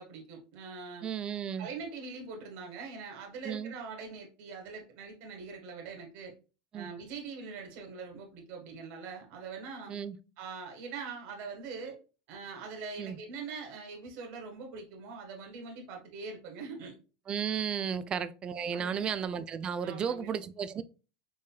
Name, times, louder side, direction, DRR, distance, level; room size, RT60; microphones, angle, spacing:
voice 1, 0.0-1.1 1.6-6.3 6.7-9.9 10.4-12.0 12.3-16.9 17.8-18.0 18.7-19.1 19.8-20.3, right 4 dB, 60° right, 1.4 m, -43 dB
voice 2, 1.0-1.7 3.4-3.7 6.7-6.9 9.9-10.2 13.0-13.2 17.3-20.8, right 7 dB, 30° right, 0.4 m, -34 dB
4.6 x 3.1 x 2.2 m
supercardioid pair, 115°, 3 cm